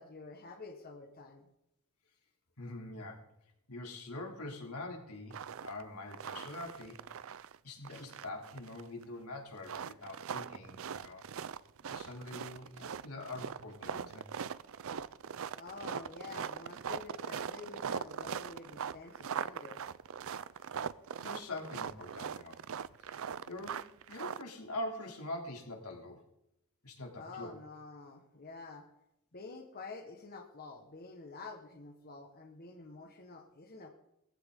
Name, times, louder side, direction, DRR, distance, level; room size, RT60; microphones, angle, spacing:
voice 1, 0.0-1.5 15.6-19.8 27.2-28.9 29.3-33.9, left 3 dB, 45° left, 3 dB, 1.5 m, -48 dB
voice 2, 2.6-3.3 3.7-7.2 7.6-11.3 11.9-14.3 20.7-20.8 21.2-22.6 23.0-26.2 26.8-27.5, left 2 dB, 85° left, 1 dB, 3.2 m, -44 dB
sound 1, 5.3-5.8 6.1-7.6 7.8-9.0 9.6-24.4, right 7 dB, 65° right, 0.5 m, -41 dB
19.5 x 15.0 x 3.8 m, 0.83 s
head